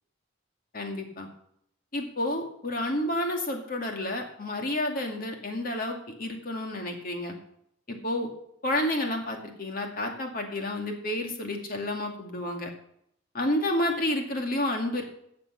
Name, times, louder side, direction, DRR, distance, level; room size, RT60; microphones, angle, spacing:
voice 1, 0.7-1.3 1.9-7.3 7.9-8.3 8.6-12.7 13.3-15.0, left 1 dB, 45° left, 3 dB, 2.2 m, -30 dB
14.0 x 7.7 x 5.8 m, 0.71 s
head